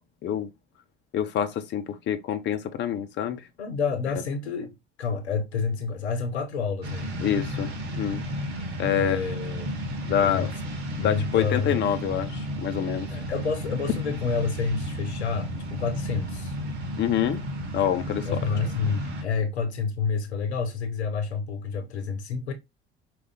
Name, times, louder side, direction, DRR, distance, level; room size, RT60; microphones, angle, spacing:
voice 1, 1.1-3.4 7.2-8.2 8.8-9.2 10.1-10.5 11.0-13.1 17.0-17.4 17.7-18.4, left 9 dB, 35° left, 0.6 m, -26 dB
voice 2, 3.6-7.1 8.9-9.7 10.2-10.5 11.0-11.8 13.1-16.5 18.2-22.5, left 5 dB, 80° left, 0.8 m, -29 dB
sound 1, 6.8-19.2, equal, 75° right, 1.1 m, -33 dB
4.9 x 2.5 x 3.5 m
figure-of-eight pair, 55°, 33 cm